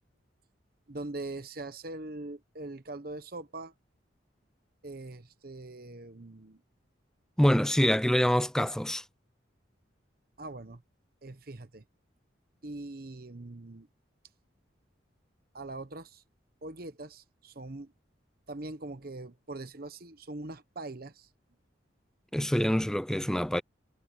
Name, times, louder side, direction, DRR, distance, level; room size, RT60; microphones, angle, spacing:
voice 1, 0.9-3.7 4.8-6.6 10.4-10.8 11.2-11.8 12.6-13.9 15.5-16.2 16.6-17.9 18.5-21.3, right 2 dB, 50° right, 1.0 m, -42 dB
voice 2, 7.4-9.0 22.3-23.6, equal, 5° left, 0.5 m, -25 dB
head